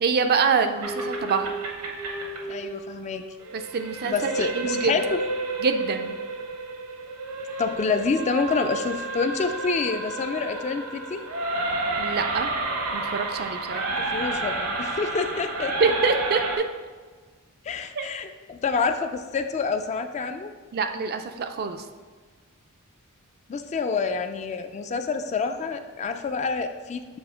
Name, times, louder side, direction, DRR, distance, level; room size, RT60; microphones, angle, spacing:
voice 1, 0.0-1.5 3.5-5.0 5.6-6.1 12.0-12.5 12.9-13.8 15.8-16.4 17.9-18.1 20.7-21.8, right 5 dB, 45° right, 7 dB, 0.4 m, -25 dB
sound 1, 0.8-16.6, right 2 dB, 70° right, 0.9 m, -31 dB
voice 2, 2.5-3.3 4.0-5.2 7.6-11.2 13.7-15.9 17.6-20.5 23.5-27.2, left 4 dB, 30° left, 8 dB, 0.3 m, -28 dB
7.1 x 2.7 x 4.9 m, 1.5 s
head